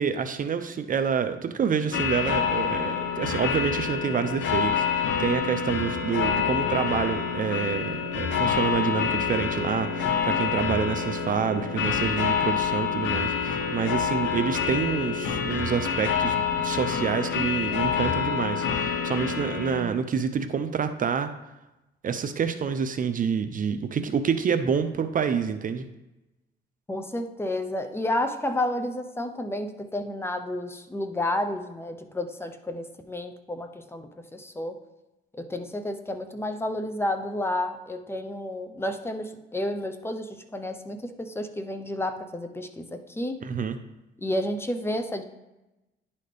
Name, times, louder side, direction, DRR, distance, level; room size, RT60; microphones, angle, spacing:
voice 1, 0.0-21.3 22.0-25.9 43.4-43.8, right 6 dB, 45° right, 9 dB, 0.5 m, -28 dB
sound 1, 1.9-19.8, left 7 dB, 75° left, 0.7 m, -27 dB
voice 2, 26.9-34.8 35.3-43.4 44.2-45.2, left 1 dB, 10° left, 7 dB, 0.7 m, -31 dB
10.5 x 4.2 x 3.3 m, 0.99 s
cardioid pair, 90°, 20 cm